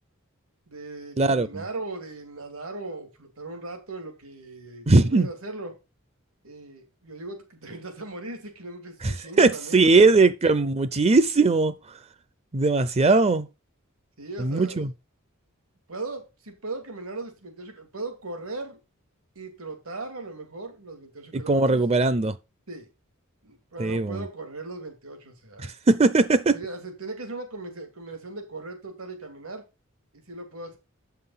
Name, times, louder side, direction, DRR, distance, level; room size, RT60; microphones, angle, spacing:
voice 1, 0.7-5.8 6.4-10.1 14.2-14.9 15.9-18.8 19.3-21.8 22.7-22.9 23.4-25.7 26.5-29.6 30.1-30.8, right 2 dB, 80° right, 2.6 m, -38 dB
voice 2, 1.2-1.5 4.9-5.3 9.0-11.7 12.5-13.5 14.4-14.9 21.3-22.3 23.8-24.2 25.6-26.6, right 3 dB, 30° right, 0.5 m, -20 dB
8.4 x 5.8 x 5.6 m
head